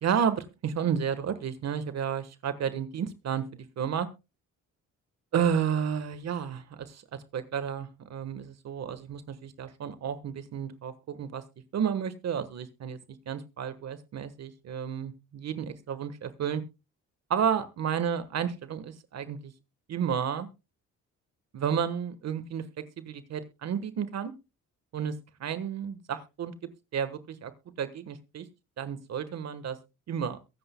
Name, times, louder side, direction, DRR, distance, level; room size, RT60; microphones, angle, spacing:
voice 1, 0.0-4.1 5.3-11.4 11.7-13.0 13.3-16.6 17.3-19.5 19.9-20.5 21.5-22.6 23.0-24.3 24.9-25.1 25.4-26.5 26.9-27.5 27.8-28.5 28.8-29.8 30.1-30.4, right 8 dB, 60° right, 12 dB, 1.3 m, -31 dB
22.5 x 8.0 x 2.2 m, 0.27 s
cardioid pair, 90°, 30 cm